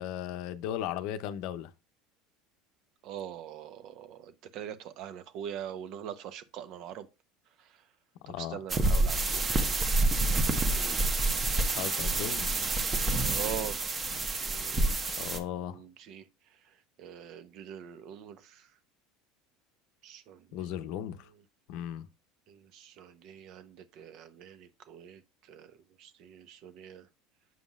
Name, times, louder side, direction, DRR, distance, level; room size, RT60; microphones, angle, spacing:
voice 1, 0.0-1.7 8.2-8.6 11.7-12.5 15.2-15.8 20.5-21.3 21.7-22.1, left 11 dB, 65° left, 0.6 m, -36 dB
voice 2, 3.0-7.1 8.3-9.4 10.3-10.4 10.8-11.0 12.8-12.9 13.3-13.8 14.3-14.9 15.7-16.2 17.0-18.4 20.0-20.4 22.5-25.2 25.5-25.7 26.0-27.0, right 9 dB, 60° right, 0.8 m, -43 dB
sound 1, 8.7-15.4, right 2 dB, 30° right, 1.0 m, -28 dB
7.5 x 5.4 x 2.4 m
supercardioid pair, 95°, 0 cm